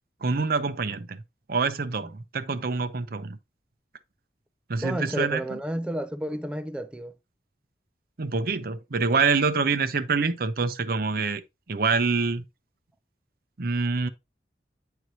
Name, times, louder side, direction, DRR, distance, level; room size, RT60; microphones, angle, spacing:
voice 1, 0.2-1.2 1.5-3.4 4.7-5.4 8.2-11.4 11.7-12.4 13.6-14.1, right 4 dB, 55° right, 0.7 m, -26 dB
voice 2, 4.8-7.2, right 1 dB, 5° right, 0.3 m, -31 dB
9.2 x 4.7 x 2.7 m
head